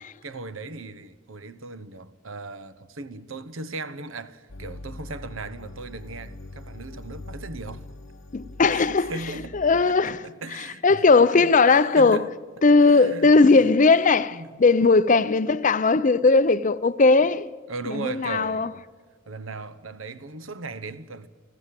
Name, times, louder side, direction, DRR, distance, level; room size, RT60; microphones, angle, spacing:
voice 1, 0.2-7.9 8.6-11.0 11.4-11.5 12.0-12.3 12.9-13.6 14.3-14.6 17.7-18.8 19.3-21.3, right 3 dB, 85° right, 1.0 m, -37 dB
sound 1, 4.5-9.8, left 2 dB, 75° left, 1.0 m, -42 dB
voice 2, 8.3-9.1 9.5-10.2 10.8-12.2 12.6-17.5 17.9-18.7, left 3 dB, 40° left, 0.6 m, -18 dB
29.0 x 13.5 x 7.6 m
head